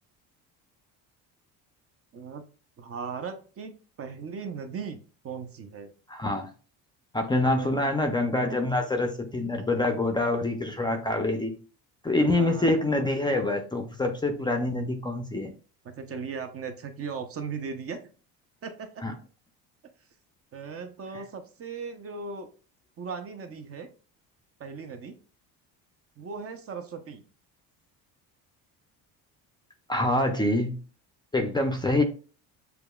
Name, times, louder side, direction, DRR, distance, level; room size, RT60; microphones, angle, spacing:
voice 1, 2.8-5.0 5.2-5.9 7.3-8.0 12.2-13.0 15.8-18.0 18.6-19.0 20.5-22.5 23.0-23.9 24.6-25.2 26.2-27.2, right 5 dB, 35° right, 7 dB, 0.6 m, -38 dB
voice 2, 6.1-6.5 7.1-11.5 12.0-15.5 19.0-19.1 29.9-30.8 31.3-32.0, left 2 dB, 10° left, 5 dB, 0.5 m, -26 dB
6.8 x 2.3 x 2.3 m, 0.38 s
cardioid pair, 110°, 39 cm